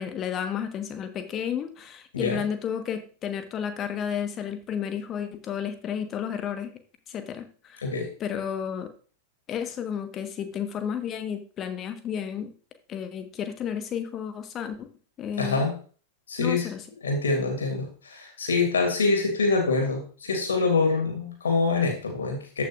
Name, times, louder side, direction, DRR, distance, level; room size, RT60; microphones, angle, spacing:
voice 1, 0.0-6.7 7.1-7.8 8.2-8.9 9.5-12.5 12.9-14.9 15.2-15.6 16.4-16.8, left 8 dB, 30° left, 8 dB, 1.3 m, -32 dB
voice 2, 15.4-15.7 16.3-16.7 17.0-22.6, left 3 dB, 70° left, 2 dB, 2.7 m, -25 dB
14.0 x 6.2 x 2.5 m, 0.40 s
figure-of-eight pair, 90°, 0 cm